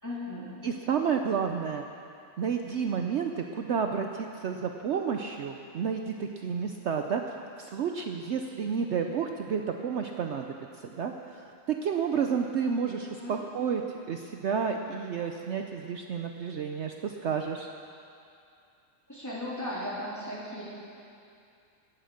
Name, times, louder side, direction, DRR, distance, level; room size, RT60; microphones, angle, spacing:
voice 1, 0.0-0.6 13.2-13.4 19.1-20.6, left 1 dB, 10° left, -8 dB, 3.7 m, -36 dB
voice 2, 0.6-1.8 2.4-7.2 7.6-17.7, right 6 dB, 60° right, 4 dB, 0.9 m, -31 dB
17.5 x 10.5 x 6.5 m, 2.5 s
omnidirectional pair, 1.5 m